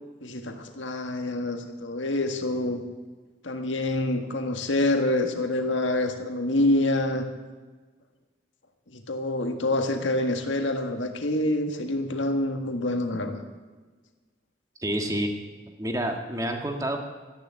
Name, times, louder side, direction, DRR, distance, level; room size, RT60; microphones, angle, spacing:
voice 1, 0.2-2.8 3.4-7.3 8.9-13.4, left 1 dB, 90° left, 5 dB, 1.7 m, -26 dB
voice 2, 14.8-15.3 15.8-17.0, right 1 dB, 20° right, 3 dB, 1.7 m, -28 dB
13.5 x 10.5 x 8.6 m, 1.3 s
head